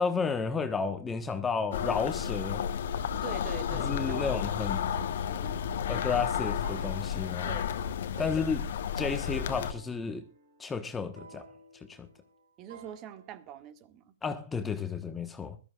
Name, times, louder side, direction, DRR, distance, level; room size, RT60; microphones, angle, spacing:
voice 1, 0.0-2.7 3.7-4.9 5.9-7.5 8.2-8.6 9.0-10.2 10.6-11.5 11.9-12.1 14.2-15.6, left 5 dB, 15° left, 1.2 m, -32 dB
sound 1, 1.5-13.3, right 3 dB, 75° right, 5.6 m, -55 dB
sound 2, 1.7-9.7, left 8 dB, 65° left, 1.2 m, -32 dB
voice 2, 3.2-4.4 4.7-5.9 7.4-7.8 8.2-8.5 12.6-14.1, right 9 dB, 35° right, 1.6 m, -45 dB
21.0 x 13.5 x 2.4 m
hypercardioid pair, 120°, 0 cm